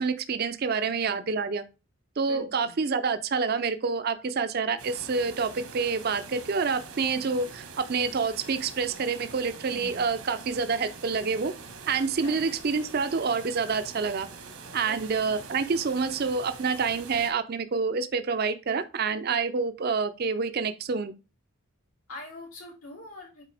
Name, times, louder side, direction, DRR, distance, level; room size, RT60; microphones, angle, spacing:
voice 1, 0.0-1.6 2.2-11.5 11.9-14.3 14.7-21.1, right 5 dB, 45° right, 11 dB, 0.5 m, -27 dB
voice 2, 0.8-1.1 2.2-2.7 9.7-10.0 12.2-12.5 14.8-15.0 22.1-23.4, left 1 dB, 90° left, -2 dB, 3.6 m, -44 dB
sound 1, 4.8-17.3, right 4 dB, 80° right, 1.4 m, -44 dB
8.2 x 4.2 x 3.4 m, 0.30 s
head